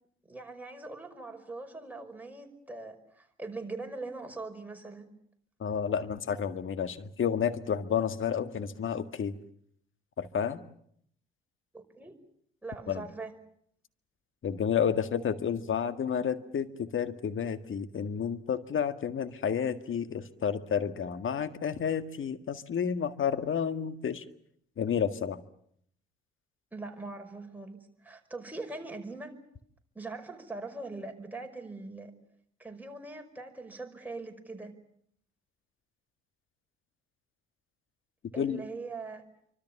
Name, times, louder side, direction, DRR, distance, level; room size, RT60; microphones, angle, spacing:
voice 1, 0.2-5.1 11.7-12.1 12.6-13.3 26.7-29.3 30.0-32.1 32.6-34.7 38.3-39.2, right 3 dB, 5° right, 3 dB, 5.3 m, -41 dB
voice 2, 5.6-9.3 10.2-10.6 12.9-13.1 14.4-24.2 24.8-25.4 38.4-38.6, left 7 dB, 40° left, 10 dB, 1.8 m, -30 dB
27.0 x 25.0 x 7.1 m, 0.68 s
figure-of-eight pair, 50°, 30 cm